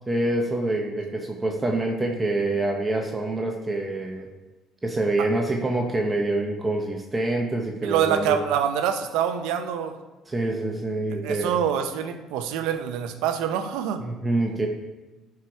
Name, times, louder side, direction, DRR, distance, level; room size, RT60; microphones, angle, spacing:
voice 1, 0.1-4.3 4.8-8.4 10.3-11.5 14.0-14.7, right 2 dB, 20° right, 1 dB, 1.0 m, -26 dB
voice 2, 7.8-10.0 11.2-14.0, right 9 dB, 85° right, 8 dB, 0.8 m, -25 dB
11.0 x 4.8 x 4.8 m, 1.1 s
cardioid pair, 100°, 0 cm